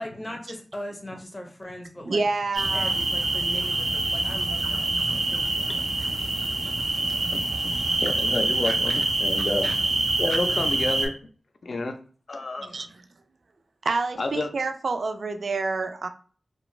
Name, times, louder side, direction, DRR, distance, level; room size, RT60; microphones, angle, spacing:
voice 1, 0.0-2.2 2.7-5.9 12.6-12.9, left 1 dB, 25° left, 2 dB, 0.6 m, -39 dB
voice 2, 2.0-2.9 8.7-9.0 9.6-9.8 12.7-12.9 13.8-16.1, right 3 dB, 70° right, 7 dB, 0.3 m, -28 dB
sound 1, 2.5-11.1, right 2 dB, 85° right, 0.8 m, -25 dB
voice 3, 7.3-9.8 10.2-11.1 11.6-11.9 12.3-12.7 14.2-14.5, left 2 dB, 65° left, 6 dB, 0.4 m, -30 dB
2.4 x 2.1 x 3.1 m, 0.41 s
wide cardioid pair, 110°, 0 cm